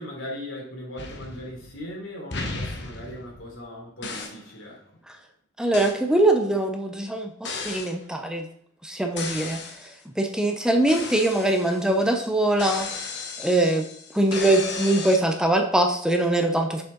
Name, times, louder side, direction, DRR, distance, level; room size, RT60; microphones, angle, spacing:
voice 1, 0.0-4.8, left 1 dB, 85° left, -2 dB, 3.2 m, -38 dB
sound 1, 1.0-1.9 2.3-3.6 4.0-4.5 5.7-6.0 7.4-8.0 9.2-9.9 10.9-12.0 12.6-15.2, left 3 dB, 60° left, 1.1 m, -35 dB
voice 2, 5.6-8.5 8.8-9.9 10.2-12.9 13.4-13.9 14.1-16.8, right 1 dB, 5° right, 4 dB, 0.6 m, -22 dB
6.8 x 6.1 x 3.9 m, 0.66 s
head